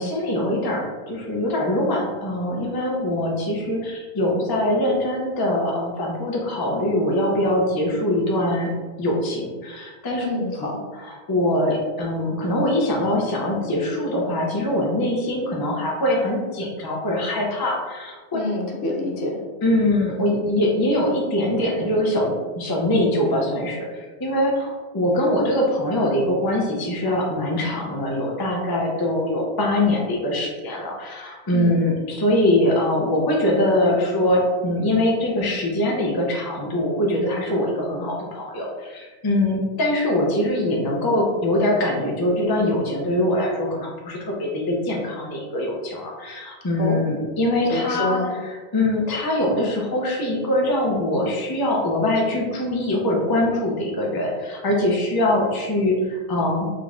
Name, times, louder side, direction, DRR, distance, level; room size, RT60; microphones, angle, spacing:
voice 1, 0.0-8.7 9.0-10.3 10.9-18.2 19.6-56.7, left 1 dB, 30° left, -2 dB, 0.5 m, -23 dB
voice 2, 10.2-10.8 18.3-19.4 31.5-31.8 46.8-47.0 47.7-48.3, left 2 dB, 65° left, 0 dB, 0.9 m, -26 dB
3.7 x 3.3 x 2.4 m, 1.4 s
omnidirectional pair, 1.2 m